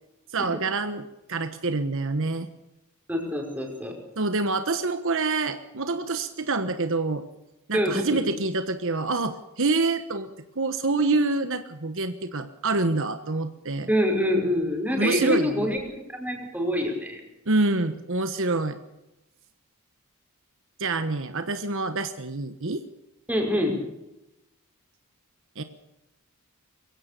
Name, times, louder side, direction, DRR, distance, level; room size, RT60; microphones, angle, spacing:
voice 1, 0.3-2.5 4.2-7.2 7.7-10.3 10.6-13.9 15.0-15.7 17.5-18.8 20.8-22.8 25.6-25.7, right 3 dB, 60° right, 9 dB, 1.3 m, -26 dB
voice 2, 3.1-4.0 7.7-8.3 13.9-17.2 23.3-23.8, equal, 5° right, 1 dB, 5.3 m, -26 dB
23.0 x 16.5 x 6.8 m, 0.92 s
head